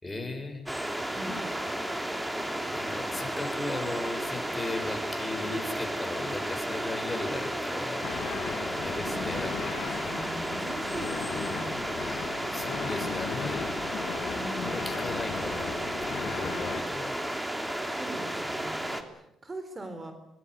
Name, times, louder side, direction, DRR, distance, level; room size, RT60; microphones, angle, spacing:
voice 1, 0.0-0.7 1.9-2.1 2.6-8.1 8.8-9.7 10.3-10.4 12.5-13.7 14.5-15.7 16.0-17.2, left 2 dB, 15° left, 4 dB, 7.3 m, -36 dB
sound 1, 0.7-19.0, right 1 dB, 10° right, 3.1 m, -33 dB
voice 2, 1.2-1.8 9.1-11.8 14.3-14.8 17.9-20.1, right 1 dB, 25° right, 9 dB, 3.9 m, -41 dB
sound 2, 8.0-16.8, left 9 dB, 85° left, 2.2 m, -38 dB
26.0 x 21.0 x 8.2 m, 0.85 s
cardioid pair, 90°, 0 cm